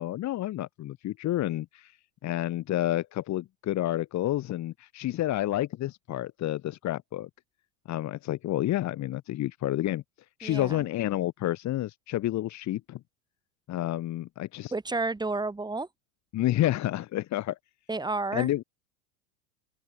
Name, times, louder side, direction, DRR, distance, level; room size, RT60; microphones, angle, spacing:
voice 1, 0.0-2.0 2.2-7.3 7.9-10.0 10.4-13.0 13.7-14.7 16.3-17.6 18.3-18.6, left 14 dB, 40° left, 4.1 m, -29 dB
voice 2, 10.4-10.8 14.7-15.9 17.9-18.6, right 3 dB, 10° right, 7.7 m, -31 dB
open air
supercardioid pair, 125°, 42 cm